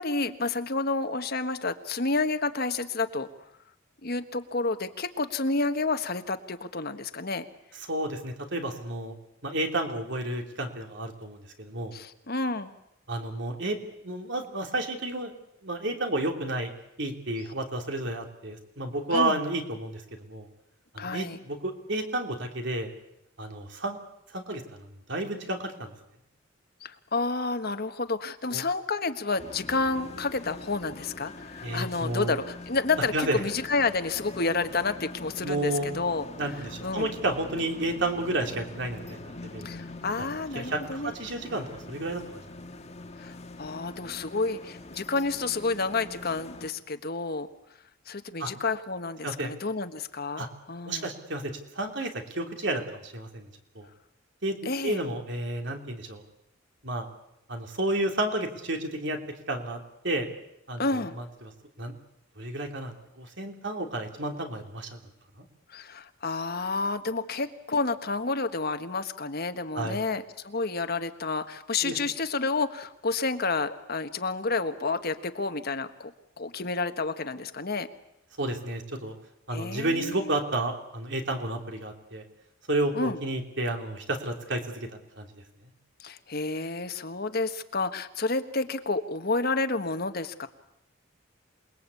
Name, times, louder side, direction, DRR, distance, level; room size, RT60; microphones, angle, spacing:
voice 1, 0.0-3.3 4.0-7.4 11.9-12.7 19.1-19.4 21.0-21.4 26.8-36.2 36.8-37.1 39.6-41.1 43.2-47.5 48.1-51.1 54.6-55.0 60.8-61.2 65.7-76.1 76.4-77.9 79.5-80.3 82.9-83.2 86.0-90.5, left 3 dB, 50° left, 9 dB, 1.4 m, -30 dB
voice 2, 7.9-9.1 9.4-11.9 13.1-13.8 14.0-15.3 15.6-16.7 17.0-20.5 20.9-22.9 23.4-24.0 24.3-25.9 28.5-28.6 31.6-32.3 33.1-33.4 35.4-35.9 36.4-39.7 40.5-42.4 48.4-48.5 49.2-49.5 50.4-50.5 50.9-53.5 53.7-53.9 54.4-56.2 56.8-57.1 57.5-59.2 59.5-59.8 60.0-60.3 60.7-61.5 61.8-61.9 62.4-65.0 69.7-70.0 71.8-72.0 78.4-79.1 79.5-82.2 82.7-84.9 85.2-85.3, right 1 dB, 60° right, 4 dB, 3.2 m, -31 dB
sound 1, 29.4-46.7, left 2 dB, 35° left, 1.6 m, -43 dB
28.0 x 20.5 x 8.4 m, 0.81 s
head